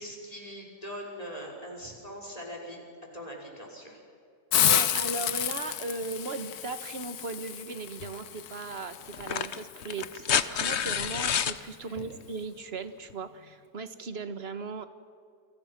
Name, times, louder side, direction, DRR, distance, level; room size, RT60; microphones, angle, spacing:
voice 1, 0.0-2.8 3.1-4.0 11.8-12.0, equal, 25° left, 0 dB, 5.5 m, -41 dB
Hiss, 4.5-10.1, left 10 dB, 80° left, 1.4 m, -30 dB
voice 2, 4.5-14.9, right 4 dB, 40° right, 10 dB, 1.6 m, -37 dB
sound 1, 8.0-8.1 9.1-11.6 13.1-13.2, left 8 dB, 50° left, 1.0 m, -29 dB
29.0 x 26.5 x 6.0 m, 2.3 s
omnidirectional pair, 1.6 m